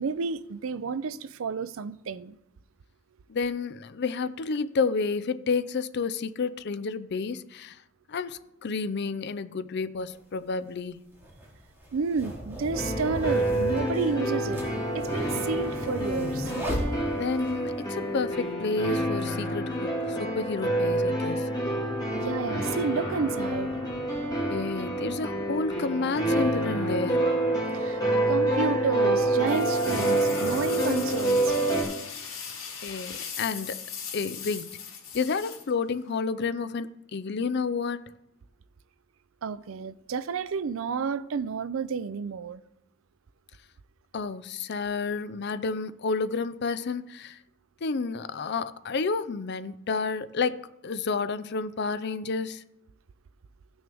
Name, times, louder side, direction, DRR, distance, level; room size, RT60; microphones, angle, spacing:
voice 1, 0.0-2.4 11.9-16.5 22.1-23.7 27.7-28.0 28.3-31.6 32.5-32.6 39.4-42.6, right 5 dB, 75° right, 0.5 m, -31 dB
voice 2, 3.3-7.8 8.1-11.0 17.2-21.5 24.5-27.3 32.8-33.8 34.1-34.8 35.1-38.0 44.1-47.4 47.8-52.6, left 4 dB, 55° left, 0.5 m, -30 dB
sound 1, 10.1-10.2 11.1-17.5, equal, 10° right, 2.6 m, -36 dB
sound 2, 12.7-31.8, right 1 dB, 20° left, 2.2 m, -27 dB
sound 3, 29.5-36.2, left 7 dB, 85° left, 2.8 m, -39 dB
16.5 x 6.2 x 3.5 m
head